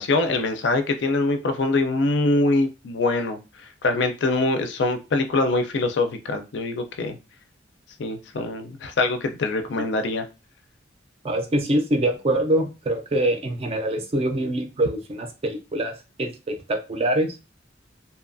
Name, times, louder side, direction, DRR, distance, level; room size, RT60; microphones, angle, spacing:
voice 1, 0.0-3.4 3.8-7.2 8.0-10.3, left 2 dB, 65° left, 7 dB, 0.4 m, -23 dB
voice 2, 11.2-17.4, right 1 dB, 35° right, 4 dB, 0.4 m, -24 dB
2.8 x 2.3 x 2.5 m, 0.29 s
head